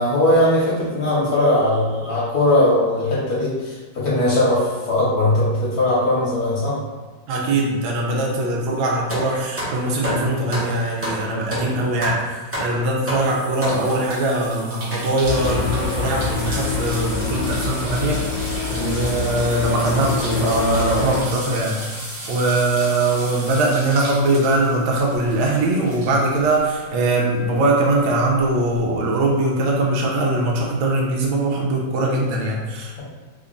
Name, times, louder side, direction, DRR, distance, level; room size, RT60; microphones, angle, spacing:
voice 1, 0.0-6.8, left 1 dB, 60° left, -7 dB, 1.4 m, -19 dB
voice 2, 7.3-18.2 18.7-21.8 22.3-33.0, right 2 dB, 80° right, -2 dB, 1.4 m, -21 dB
sound 1, 9.1-14.1 14.9-15.1 15.8-16.3 17.2-17.4 17.9-18.0 18.5-18.6 19.1-19.3 19.7-19.9, equal, 10° right, 0.6 m, -29 dB
sound 2, 13.2-27.2 27.6-28.8, right 1 dB, 50° right, 1.1 m, -35 dB
sound 3, 15.2-21.2, left 4 dB, 75° left, 1.2 m, -26 dB
3.5 x 2.3 x 3.8 m, 1.3 s
omnidirectional pair, 2.1 m